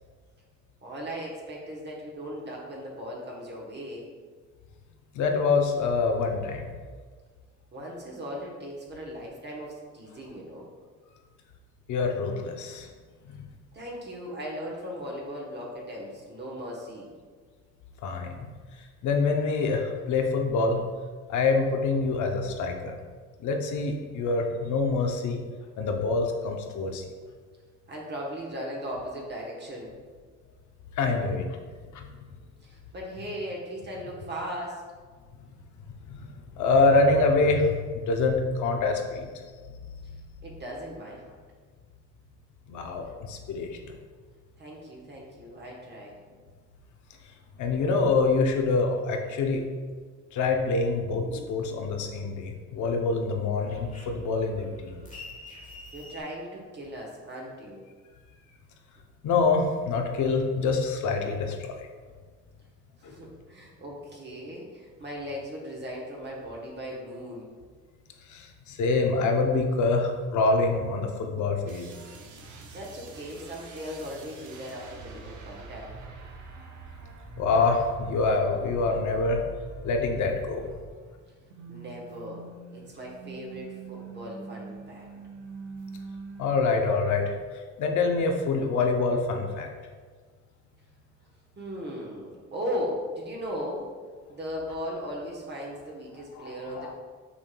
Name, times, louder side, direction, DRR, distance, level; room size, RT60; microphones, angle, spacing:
voice 1, 0.8-4.1 7.7-10.7 13.7-17.1 27.9-29.9 32.6-34.8 40.4-41.4 44.6-46.2 55.9-57.8 63.0-67.5 72.7-75.9 81.7-85.1 91.6-93.9 94.3-96.9, equal, 35° right, -3 dB, 1.0 m, -37 dB
voice 2, 5.1-6.7 11.9-12.9 13.3-13.4 18.0-18.5 19.0-20.8 21.3-23.0 23.4-25.5 25.8-27.0 31.0-31.5 31.9-32.1 36.1-39.5 42.7-43.9 47.6-49.6 50.3-55.0 59.2-61.9 63.0-63.2 68.3-71.9 77.4-79.4 79.8-80.7 86.4-87.3 87.8-89.7 96.4-96.9, left 3 dB, 75° left, 3 dB, 0.7 m, -26 dB
sound 1, 51.1-52.5 52.8-56.2, left 1 dB, 25° left, 1.1 m, -46 dB
sound 2, 71.7-81.2 81.5-86.5, right 4 dB, 80° right, 0.7 m, -44 dB
6.0 x 3.6 x 2.3 m, 1.5 s
cardioid pair, 90°, 30 cm